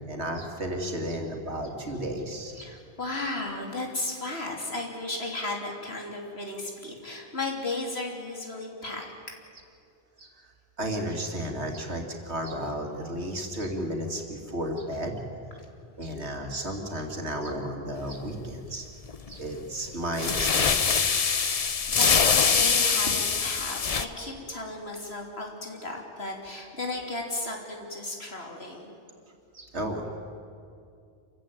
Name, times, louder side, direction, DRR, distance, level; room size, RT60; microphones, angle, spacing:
voice 1, 0.0-2.7 10.2-10.3 10.8-15.2 16.0-18.9 19.3-20.7 21.2-21.4 29.5-30.1, right 1 dB, 85° right, 2 dB, 3.0 m, -33 dB
voice 2, 2.6-9.1 21.2-29.0, left 2 dB, 70° left, 1 dB, 3.5 m, -34 dB
sound 1, 19.1-19.3 20.2-24.0, left 5 dB, 40° left, 0.8 m, -23 dB
27.5 x 15.0 x 9.1 m, 2.4 s
omnidirectional pair, 1.1 m